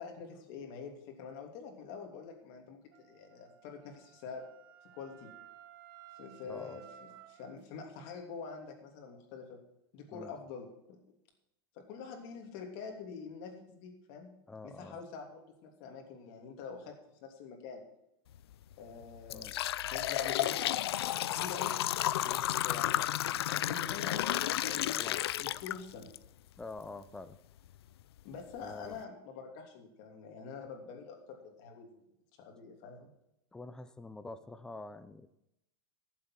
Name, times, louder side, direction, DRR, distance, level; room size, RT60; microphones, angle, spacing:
voice 1, 0.0-4.5 4.9-5.3 6.2-9.6 9.9-11.0 11.7-14.3 14.6-16.9 17.2-17.8 18.8-19.5 19.9-21.8 22.1-25.0 25.4-26.1 28.2-32.1 32.4-33.1, left 5 dB, 40° left, 3 dB, 3.0 m, -46 dB
Wind instrument woodwind instrument, 2.9-7.6, right 11 dB, 60° right, 1.2 m, -56 dB
voice 2, 6.5-6.8 10.1-10.3 14.5-15.0 19.3-19.5 25.0-25.3 26.6-27.4 28.6-29.0 33.5-35.3, left 2 dB, 5° left, 13 dB, 0.5 m, -46 dB
sound 1, 18.3-18.5 19.0-26.2 26.6-26.7 27.6-27.7 28.2-28.3 28.7-28.9, left 13 dB, 90° left, 0.5 m, -32 dB
14.5 x 7.6 x 6.0 m, 0.84 s
supercardioid pair, 165°, 13 cm